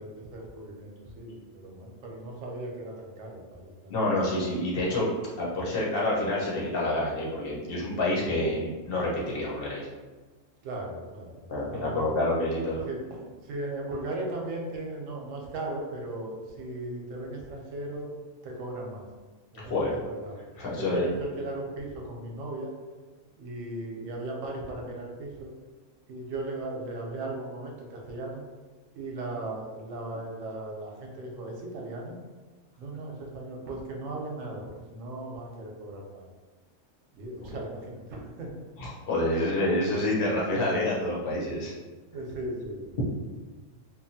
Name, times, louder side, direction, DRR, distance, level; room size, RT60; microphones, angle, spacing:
voice 1, 0.0-3.9 10.6-12.1 12.9-18.1 18.4-19.1 19.5-20.3 20.7-22.7 23.4-25.5 26.1-28.4 29.0-32.2 32.8-36.2 37.1-38.5 42.1-43.0, right 2 dB, 90° right, 0 dB, 1.0 m, -37 dB
voice 2, 3.9-5.1 5.4-9.8 11.5-12.8 19.5-19.9 20.6-21.1 38.8-41.7, left 1 dB, 50° left, -5 dB, 0.9 m, -28 dB
2.9 x 2.2 x 2.7 m, 1.3 s
omnidirectional pair, 1.3 m